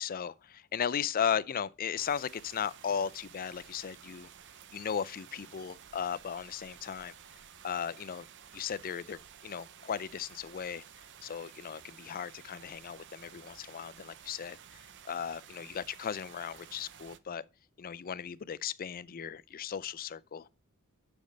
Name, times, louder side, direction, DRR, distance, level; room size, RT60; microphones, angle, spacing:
voice 1, 0.0-4.3 4.7-7.1 7.6-8.3 8.5-10.8 11.2-14.6 15.1-17.4 17.8-20.5, left 8 dB, 40° left, 0.4 m, -36 dB
sound 1, 2.0-17.2, right 9 dB, 55° right, 0.7 m, -53 dB
10.5 x 5.3 x 5.2 m
head